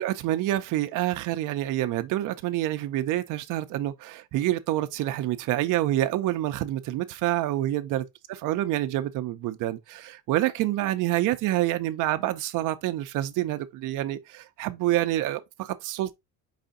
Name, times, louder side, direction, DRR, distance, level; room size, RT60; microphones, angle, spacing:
voice 1, 0.0-8.0 8.4-16.1, right 14 dB, 55° right, 0.6 m, -27 dB
4.9 x 2.6 x 3.7 m
cardioid pair, 160°, 37 cm